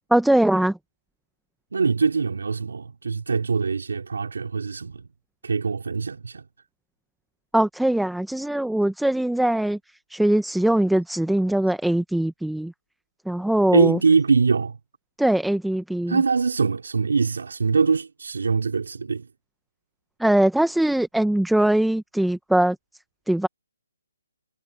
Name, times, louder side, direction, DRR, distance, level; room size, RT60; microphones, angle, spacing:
voice 1, 0.1-0.8 7.5-9.8 10.1-12.7 13.3-14.0 15.2-16.2 20.2-22.8 23.3-23.5, right 1 dB, ahead, 0.7 m, -21 dB
voice 2, 1.7-5.1 5.4-6.4 13.7-14.8 16.1-19.3, right 5 dB, 75° right, 3.4 m, -23 dB
hypercardioid pair, 170°, 0 cm